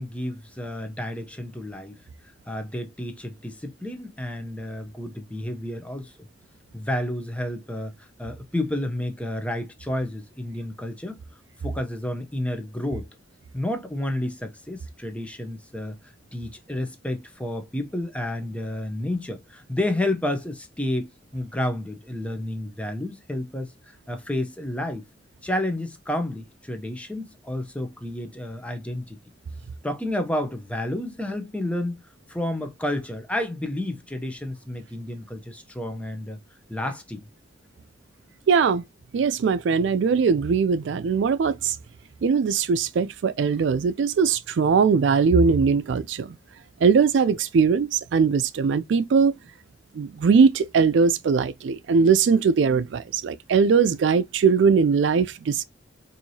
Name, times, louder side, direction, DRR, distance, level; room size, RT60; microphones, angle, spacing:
voice 1, 0.0-2.0 2.5-6.1 6.7-7.9 8.2-11.2 11.6-13.1 13.5-16.0 16.3-23.7 24.1-25.0 25.4-29.2 29.8-32.0 32.3-36.4 36.7-37.2, left 1 dB, 5° left, 0.6 m, -30 dB
voice 2, 38.5-38.8 39.1-41.8 42.2-46.4 46.8-49.3 49.9-55.6, right 5 dB, 70° right, 0.4 m, -20 dB
4.5 x 2.7 x 2.7 m
head